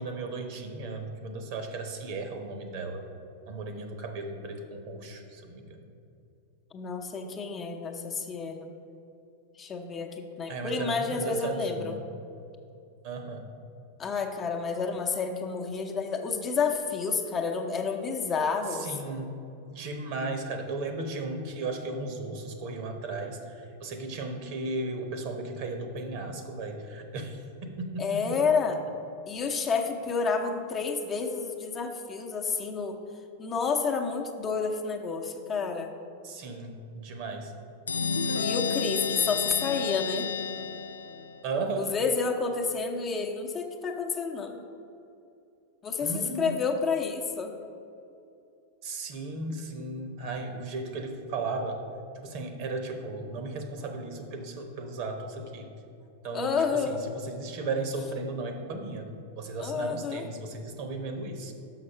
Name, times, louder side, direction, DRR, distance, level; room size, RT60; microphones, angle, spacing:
voice 1, 0.0-3.1 3.5-5.8 10.5-12.1 13.0-13.5 18.7-19.3 19.7-28.2 36.2-37.5 41.4-41.9 46.0-46.6 48.8-51.8 52.1-55.7 56.2-59.1 59.4-61.5, right 3 dB, 55° right, 5 dB, 1.0 m, -35 dB
voice 2, 6.7-8.7 9.6-12.0 14.0-18.9 28.0-28.8 29.3-33.0 33.4-35.9 38.4-40.3 41.8-44.6 45.8-46.1 46.4-47.6 56.3-57.0 59.6-60.3, left 5 dB, 30° left, 3 dB, 0.8 m, -30 dB
sound 1, 37.9-41.4, left 6 dB, 90° left, 0.3 m, -31 dB
6.2 x 5.8 x 5.6 m, 2.6 s
hypercardioid pair, 100°, 0 cm